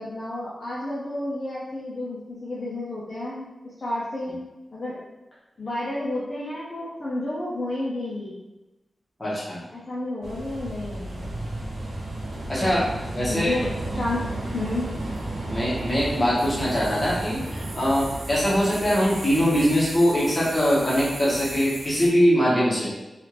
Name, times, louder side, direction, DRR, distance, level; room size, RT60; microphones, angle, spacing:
voice 1, 0.0-4.4 4.7-5.0 5.6-8.3 9.7-11.4 12.6-12.7 13.3-14.3 14.5-14.9, left 1 dB, 35° left, -8 dB, 0.5 m, -31 dB
voice 2, 9.2-9.6 12.5-12.9 13.1-13.5 15.5-22.9, equal, 15° left, -7 dB, 1.0 m, -22 dB
sound 1, 10.2-22.1, right 2 dB, 90° right, 0.7 m, -33 dB
3.4 x 2.4 x 2.9 m, 1.0 s
wide cardioid pair, 175°, 0 cm